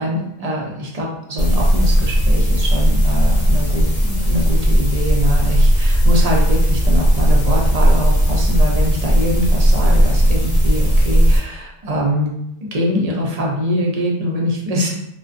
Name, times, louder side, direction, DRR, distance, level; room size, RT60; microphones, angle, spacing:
voice 1, 0.0-12.4 12.7-14.9, equal, 50° right, -2 dB, 0.5 m, -23 dB
sound 1, 1.4-11.4, equal, 40° left, 0.7 m, -15 dB
2.5 x 2.2 x 2.4 m, 0.78 s
omnidirectional pair, 1.0 m